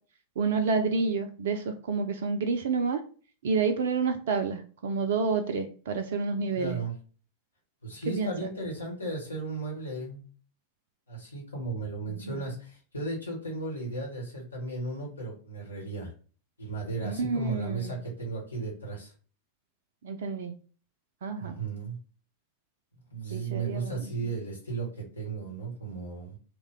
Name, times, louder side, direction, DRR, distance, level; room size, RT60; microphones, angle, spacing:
voice 1, 0.4-3.0 3.4-6.8 8.1-8.5 12.1-12.4 17.0-17.9 20.0-20.6 21.2-21.6 23.3-24.1, right 4 dB, 60° right, 8 dB, 0.3 m, -29 dB
voice 2, 6.5-7.0 7.8-10.2 11.1-16.1 16.6-19.1 21.4-22.0 23.1-26.4, right 3 dB, 80° left, -2 dB, 1.2 m, -35 dB
3.1 x 2.2 x 3.5 m, 0.40 s
figure-of-eight pair, 90°, 0 cm